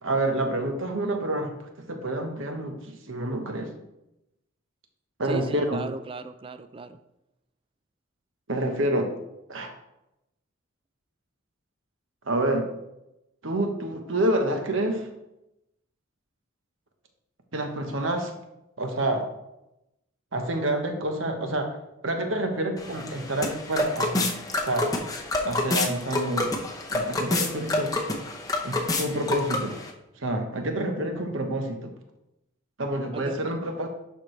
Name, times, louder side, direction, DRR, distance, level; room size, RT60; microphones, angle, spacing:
voice 1, 0.0-3.7 5.2-5.8 8.5-9.1 9.5-9.7 12.3-12.7 13.4-15.1 17.5-18.3 18.8-19.2 20.3-21.7 22.0-24.3 24.7-24.9 25.4-26.6 26.9-27.9 28.6-29.8 30.2-31.9 32.8-33.9, right 1 dB, 65° right, 4 dB, 1.1 m, -28 dB
voice 2, 5.2-7.0 33.1-33.4, right 3 dB, 25° right, 11 dB, 0.3 m, -36 dB
sound 1, 22.8-29.9, left 2 dB, 15° left, 0.7 m, -28 dB
11.5 x 4.5 x 3.2 m, 0.89 s
head